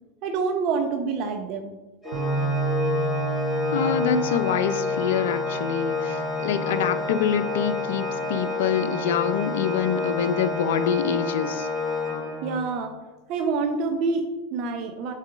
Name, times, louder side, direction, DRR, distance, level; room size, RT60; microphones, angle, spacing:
voice 1, 0.2-1.7 12.4-12.9 13.3-15.1, right 4 dB, 50° right, 6 dB, 0.8 m, -27 dB
Organ, 2.0-12.8, left 3 dB, 5° left, 2.6 m, -29 dB
sound 1, 2.1-8.4, right 4 dB, 75° right, 1.0 m, -32 dB
voice 2, 3.7-11.7, left 7 dB, 70° left, 11 dB, 0.6 m, -25 dB
7.3 x 4.2 x 5.0 m, 1.1 s
hypercardioid pair, 90°, 0 cm